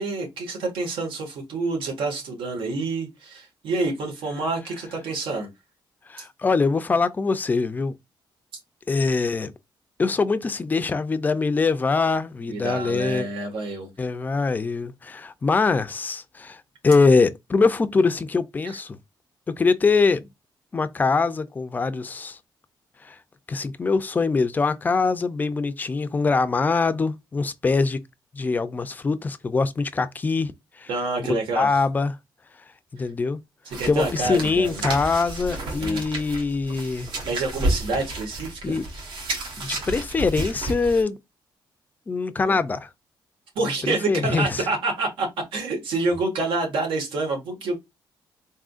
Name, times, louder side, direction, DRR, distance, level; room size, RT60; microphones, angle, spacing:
voice 1, 0.0-5.5 6.2-6.3 12.5-13.9 18.6-18.8 30.9-31.8 33.7-34.9 35.8-36.0 37.2-38.8 42.4-42.6 43.6-47.8, right 3 dB, 90° right, 1.7 m, -28 dB
voice 2, 6.1-7.9 8.9-9.5 10.0-13.3 14.0-19.0 19.5-20.2 20.7-22.4 23.0-23.2 23.5-28.0 28.3-30.5 30.8-30.9 31.2-32.1 32.9-33.4 33.9-37.1 38.6-38.8 39.6-41.2 42.1-42.9 43.9-44.6, left 4 dB, 20° left, 0.4 m, -23 dB
sound 1, 33.7-41.0, right 2 dB, 75° right, 1.5 m, -31 dB
4.1 x 3.7 x 2.4 m
cardioid pair, 165°, 8 cm